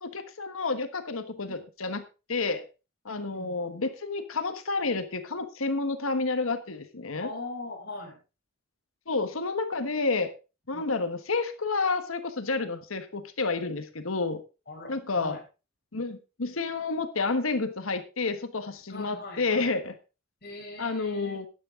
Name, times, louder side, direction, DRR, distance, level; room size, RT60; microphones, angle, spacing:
voice 1, 0.0-2.0 2.3-2.6 3.0-7.3 9.1-10.3 10.7-14.4 14.9-15.4 15.9-19.9 20.8-21.5, left 3 dB, 80° left, 9 dB, 1.3 m, -30 dB
voice 2, 3.1-3.6 7.2-8.2 10.7-10.9 14.7-15.4 18.9-19.7 20.4-21.4, left 2 dB, 50° left, 1 dB, 4.8 m, -41 dB
12.5 x 9.9 x 3.7 m, 0.30 s
head